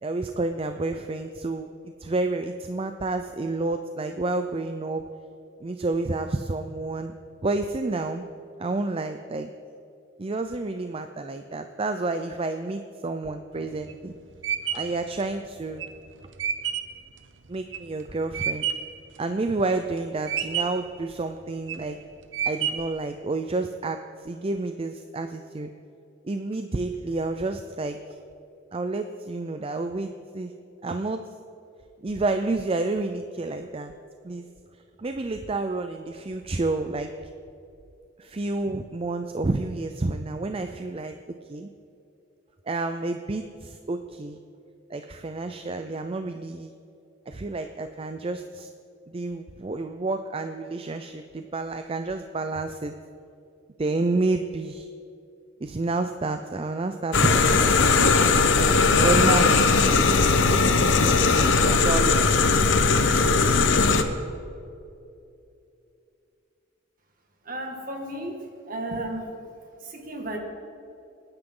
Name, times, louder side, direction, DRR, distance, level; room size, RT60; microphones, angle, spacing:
voice 1, 0.0-1.7 2.0-5.0 5.6-7.1 7.4-8.2 8.6-9.5 10.2-14.1 14.7-15.9 17.5-18.7 19.2-22.0 22.5-25.7 26.2-28.0 28.7-30.5 30.8-31.3 32.0-33.9 34.2-34.5 35.0-37.1 38.2-41.2 41.5-41.7 42.7-44.4 44.9-46.7 47.3-48.7 49.1-53.0 53.8-54.9 55.6-59.5 61.0-62.2, right 2 dB, 30° right, 7 dB, 0.5 m, -29 dB
sound 1, 13.5-19.0 19.4-20.0 20.3-20.9 21.4-21.9 22.3-23.0, right 8 dB, 80° right, 0.9 m, -29 dB
sound 2, 57.1-64.0, left 4 dB, 75° left, 1.0 m, -19 dB
voice 2, 67.5-69.2 69.8-70.4, right 1 dB, 50° right, 2 dB, 2.0 m, -33 dB
27.0 x 9.9 x 3.8 m, 2.6 s
head